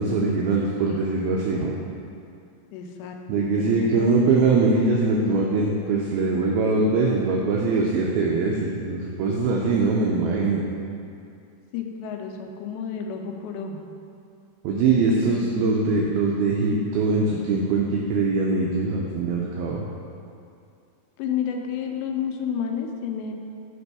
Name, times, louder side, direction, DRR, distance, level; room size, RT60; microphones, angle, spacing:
voice 1, 0.0-1.8 3.3-10.6 14.6-19.8, right 3 dB, 85° right, -2 dB, 2.1 m, -22 dB
voice 2, 2.7-4.1 11.7-13.8 15.1-15.7 21.2-23.3, left 7 dB, 85° left, 3 dB, 2.8 m, -31 dB
5.9 x 5.2 x 4.7 m, 2.4 s
omnidirectional pair, 4.9 m